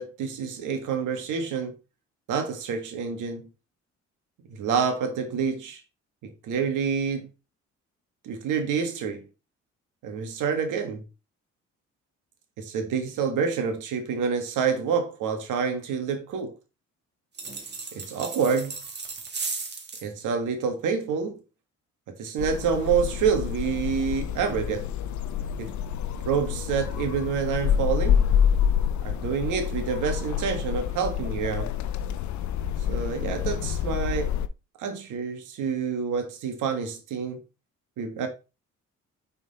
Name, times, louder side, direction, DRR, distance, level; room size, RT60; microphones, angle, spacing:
voice 1, 0.0-1.7 2.3-3.4 4.5-5.8 6.2-7.3 8.2-9.2 10.0-11.0 12.6-16.5 17.9-18.8 20.0-21.4 22.1-24.9 25.6-25.7 26.2-28.2 29.0-31.7 32.9-34.4 34.8-37.4 38.0-38.3, right 6 dB, 85° right, 1.7 m, -27 dB
sound 1, 17.3-20.1, right 4 dB, 35° right, 1.7 m, -35 dB
sound 2, 22.4-34.5, left 9 dB, 70° left, 0.6 m, -27 dB
5.7 x 4.5 x 4.2 m
cardioid pair, 90°, 30 cm